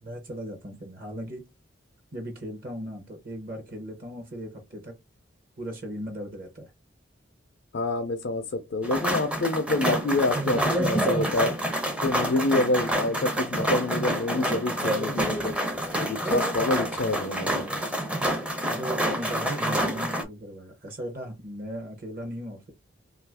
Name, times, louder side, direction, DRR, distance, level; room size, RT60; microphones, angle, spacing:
voice 1, 0.0-1.4 2.1-4.9 5.6-6.7 18.7-22.7, equal, 45° right, 0.7 m, -37 dB
voice 2, 7.7-11.6 12.0-15.6 16.0-17.7, left 2 dB, 60° left, 0.4 m, -27 dB
sound 1, 8.8-20.2, right 1 dB, 5° right, 0.5 m, -27 dB
2.7 x 2.4 x 3.4 m
head